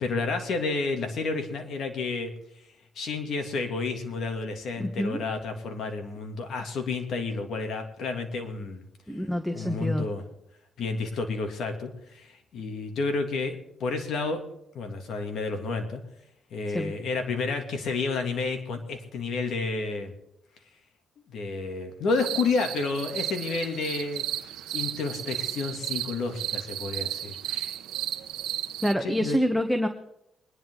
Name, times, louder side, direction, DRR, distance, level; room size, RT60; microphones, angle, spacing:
voice 1, 0.0-2.7 2.9-8.8 9.1-9.3 9.5-10.2 10.8-14.4 14.7-16.0 16.5-20.2 21.3-24.2 24.7-27.8 29.0-29.5, left 4 dB, 65° left, 5 dB, 2.8 m, -30 dB
voice 2, 4.8-5.2 9.1-10.1 16.7-16.9 28.8-29.9, equal, ahead, 7 dB, 1.3 m, -26 dB
sound 1, 22.1-28.9, right 12 dB, 90° right, 0.9 m, -34 dB
24.0 x 11.0 x 4.0 m, 0.81 s
cardioid pair, 90°, 0 cm